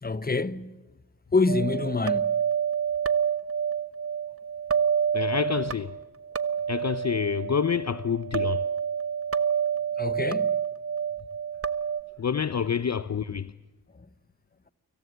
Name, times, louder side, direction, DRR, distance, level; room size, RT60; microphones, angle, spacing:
voice 1, 0.0-0.7 1.3-2.3 10.0-10.5, left 3 dB, 25° left, 1.1 m, -26 dB
sound 1, 1.5-12.0, right 8 dB, 35° right, 1.1 m, -28 dB
voice 2, 5.1-5.9 6.7-8.6 12.2-13.5, left 7 dB, 40° left, 0.8 m, -27 dB
26.0 x 15.5 x 9.8 m
cardioid pair, 45°, 39 cm